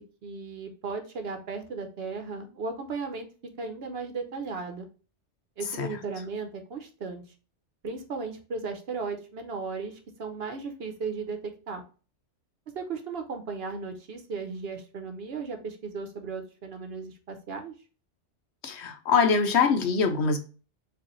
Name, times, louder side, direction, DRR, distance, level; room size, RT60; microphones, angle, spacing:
voice 1, 0.2-3.3 3.6-4.9 5.6-7.2 7.8-11.4 11.7-11.8 12.7-17.7, right 4 dB, 60° right, 1.0 m, -36 dB
voice 2, 18.6-20.4, left 5 dB, 70° left, 1.0 m, -23 dB
4.9 x 2.6 x 3.0 m
omnidirectional pair, 1.2 m